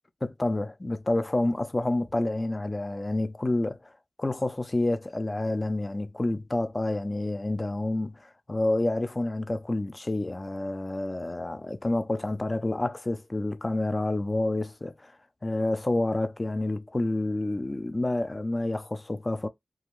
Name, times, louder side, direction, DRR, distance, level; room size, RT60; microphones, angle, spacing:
voice 1, 0.2-3.9 4.2-15.2 15.4-19.5, left 2 dB, 30° left, 0.4 m, -29 dB
2.4 x 2.3 x 3.0 m
wide cardioid pair, 90°, 0 cm